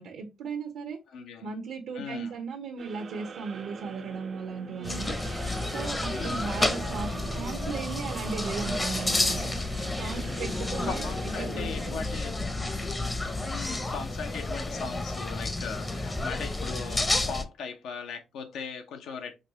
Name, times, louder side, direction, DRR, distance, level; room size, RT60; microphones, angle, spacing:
voice 1, 0.0-1.0 1.4-5.1 5.7-9.4 10.0-12.0, right 5 dB, 85° right, 0.7 m, -36 dB
voice 2, 1.1-1.5 1.9-2.3 6.1-6.5 10.2-10.3 10.8-12.4 13.4-19.3, left 6 dB, 85° left, 0.7 m, -39 dB
sound 1, 2.8-11.9, right 6 dB, 50° right, 0.4 m, -43 dB
sound 2, 3.5-16.8, left 2 dB, 45° left, 1.0 m, -52 dB
sound 3, 4.8-17.4, left 2 dB, 20° left, 0.6 m, -31 dB
5.2 x 2.3 x 2.8 m
cardioid pair, 90°, 0 cm